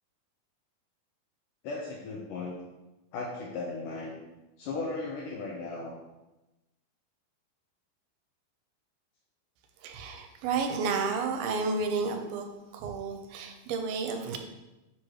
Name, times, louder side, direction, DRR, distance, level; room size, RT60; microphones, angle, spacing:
voice 1, 1.6-2.6 3.1-4.2 4.6-6.0, left 3 dB, 80° left, -1 dB, 2.0 m, -36 dB
voice 2, 9.8-12.5 12.7-14.4, right 4 dB, 90° right, 5 dB, 2.5 m, -31 dB
7.4 x 4.7 x 3.0 m, 1.0 s
omnidirectional pair, 4.4 m